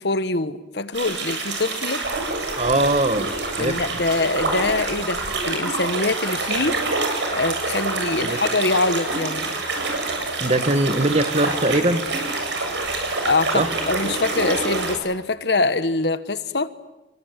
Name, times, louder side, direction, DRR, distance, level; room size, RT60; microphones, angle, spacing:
voice 1, 0.0-2.0 3.6-6.8 7.3-9.5 13.2-16.7, left 3 dB, 65° left, 1.4 m, -24 dB
sound 1, 0.9-14.9, right 3 dB, 85° right, 7.6 m, -26 dB
voice 2, 2.6-3.3 3.6-3.8 8.2-8.4 10.4-12.0 13.5-13.7, right 2 dB, 40° right, 1.7 m, -21 dB
28.5 x 24.0 x 8.3 m
head